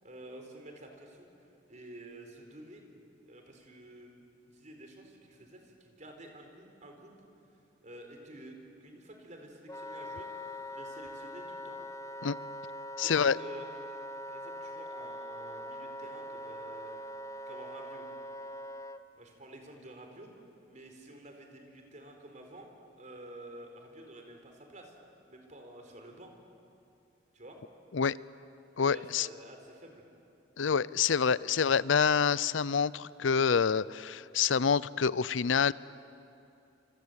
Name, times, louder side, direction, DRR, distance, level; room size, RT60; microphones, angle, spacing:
voice 1, 0.0-2.9 3.2-4.1 4.4-7.1 7.8-10.3 10.7-11.8 13.0-13.7 14.3-17.0 17.5-18.1 19.2-20.3 20.7-22.7 23.0-25.0 25.3-26.3 27.3-27.6 28.8-30.1, right 1 dB, 40° right, 3 dB, 4.3 m, -50 dB
Wind instrument woodwind instrument, 9.7-19.0, equal, 15° left, 0.8 m, -42 dB
voice 2, 13.0-13.4 27.9-28.2 28.8-29.3 30.6-35.7, left 6 dB, 75° left, 20 dB, 0.6 m, -27 dB
27.5 x 26.0 x 8.2 m, 2.7 s
head